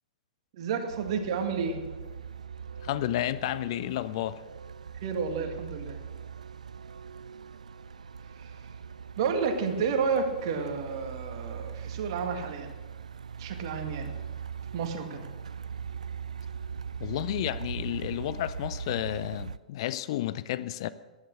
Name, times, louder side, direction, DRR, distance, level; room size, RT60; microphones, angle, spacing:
voice 1, 0.5-1.8 5.0-6.0 8.4-8.7 9.2-12.7 13.4-14.1 14.7-15.3, right 5 dB, 45° right, 2.1 m, -31 dB
Truck, 0.9-19.6, right 6 dB, 65° right, 0.5 m, -40 dB
voice 2, 2.8-4.4 17.0-20.9, left 13 dB, 45° left, 0.5 m, -31 dB
15.5 x 11.0 x 6.5 m
figure-of-eight pair, 105°, 4 cm